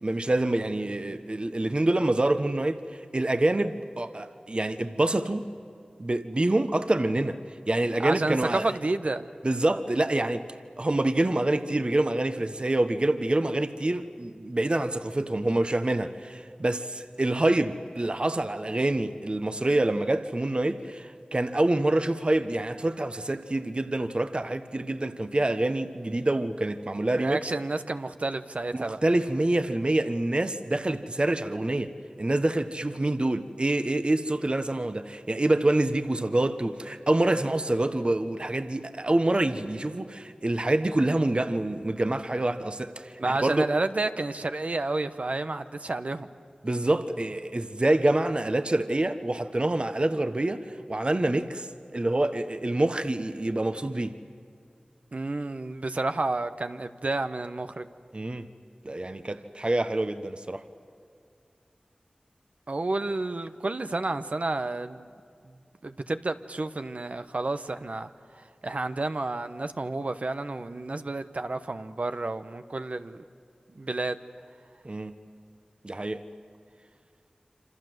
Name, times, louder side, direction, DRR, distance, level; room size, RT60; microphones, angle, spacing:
voice 1, 0.0-2.8 3.1-5.5 6.0-7.4 7.7-8.7 9.4-10.5 10.8-27.4 28.7-31.9 32.2-43.7 46.6-50.6 50.9-51.7 51.9-54.1 58.1-58.5 58.8-60.6 74.8-75.1 75.8-76.2, right 1 dB, 40° right, 10 dB, 1.2 m, -26 dB
voice 2, 8.0-9.3 27.1-29.0 43.2-46.3 55.1-57.9 62.7-65.1 65.8-68.1 68.6-73.2 73.7-74.2, right 2 dB, 60° right, 9 dB, 1.0 m, -30 dB
27.5 x 26.5 x 8.0 m, 2.3 s
wide cardioid pair, 55°, 3 cm